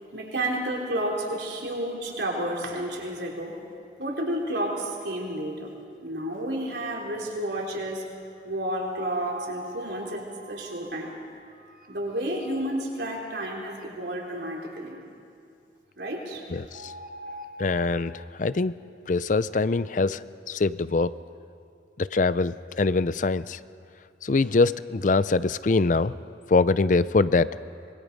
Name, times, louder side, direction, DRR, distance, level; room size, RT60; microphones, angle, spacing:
voice 1, 0.1-3.6 4.0-5.7 6.0-8.1 8.4-11.1 11.9-14.9 16.0-16.6 17.3-17.4, right 1 dB, 70° right, -1 dB, 3.6 m, -31 dB
sound 1, 8.5-8.6 8.9-12.7 13.0-13.1 13.4-13.5 13.8-14.5 16.7-18.6, equal, 45° right, 1.7 m, -45 dB
voice 2, 16.5-16.9 17.6-18.8 19.1-21.2 22.0-23.6 24.2-26.1 26.5-27.5, left 3 dB, 45° left, 16 dB, 0.5 m, -23 dB
25.0 x 22.0 x 5.3 m, 2.4 s
head